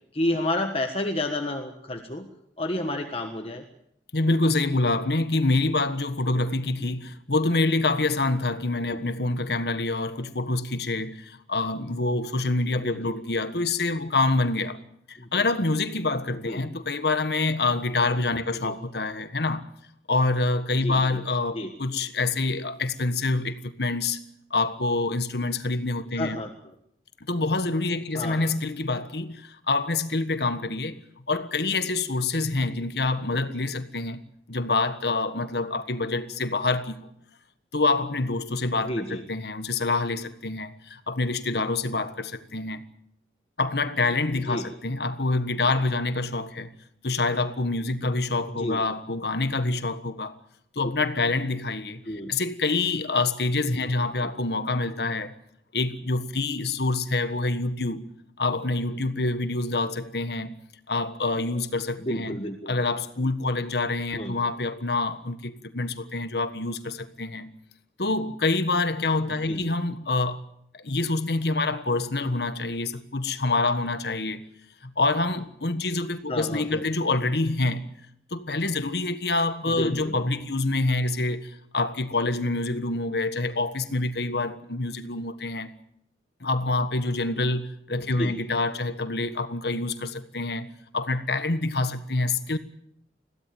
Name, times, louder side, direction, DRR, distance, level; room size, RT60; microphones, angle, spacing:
voice 1, 0.1-2.3 2.6-3.6 8.9-9.0 12.8-13.1 15.2-15.3 16.4-16.6 18.6-18.7 20.8-21.2 21.5-21.7 26.2-26.5 28.1-28.5 38.8-39.2 44.5-44.6 48.6-48.8 52.1-52.3 54.2-54.3 62.0-62.7 64.2-64.3 69.5-69.7 76.3-76.8 79.7-80.2 88.2-88.3, left 1 dB, 30° left, 1.4 m, -30 dB
voice 2, 4.1-14.8 15.1-19.7 20.1-24.2 24.5-26.4 27.3-31.0 31.3-34.2 34.5-37.1 37.7-42.8 43.6-46.7 47.0-50.4 50.7-55.3 55.7-58.0 58.4-60.6 60.9-67.5 68.0-70.4 70.7-74.4 74.8-77.8 78.3-85.7 86.4-90.7 90.9-92.6, left 3 dB, 65° left, 1.5 m, -26 dB
21.5 x 16.5 x 9.1 m
head